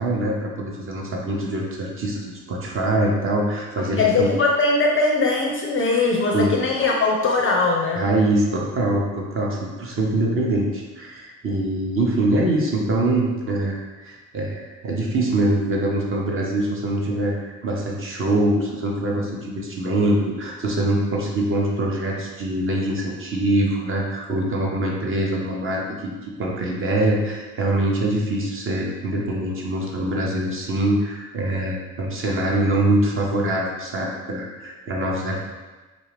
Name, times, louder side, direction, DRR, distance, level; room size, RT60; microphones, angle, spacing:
voice 1, 0.0-4.3 6.3-6.5 7.9-35.4, right 1 dB, 30° right, -2 dB, 0.7 m, -24 dB
voice 2, 3.8-8.1, left 3 dB, 30° left, -1 dB, 0.4 m, -20 dB
2.4 x 2.3 x 3.2 m, 1.2 s
hypercardioid pair, 60°, 41 cm